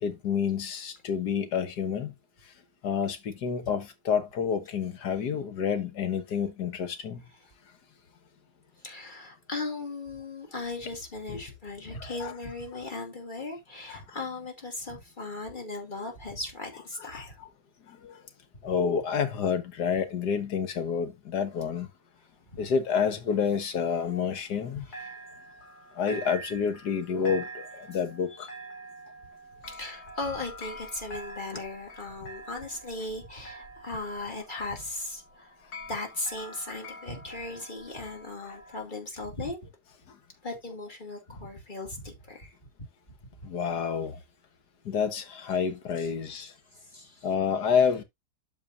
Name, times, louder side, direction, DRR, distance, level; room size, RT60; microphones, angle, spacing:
voice 1, 0.0-2.1 2.8-7.2 11.3-11.4 12.0-12.3 13.9-14.0 17.1-17.5 17.9-18.2 18.6-21.9 22.6-24.9 26.0-28.5 43.4-44.2 44.9-46.5 47.2-48.0, left 7 dB, 90° left, 1.8 m, -29 dB
voice 2, 8.8-17.4 18.7-18.8 22.5-22.6 24.7-25.1 29.6-35.5 35.9-39.7 40.4-42.6 46.0-46.1 46.8-47.3, left 2 dB, 30° left, 2.5 m, -37 dB
sound 1, 22.7-24.7 24.9-38.8, right 1 dB, 70° left, 2.6 m, -45 dB
12.5 x 5.1 x 2.6 m
omnidirectional pair, 1.7 m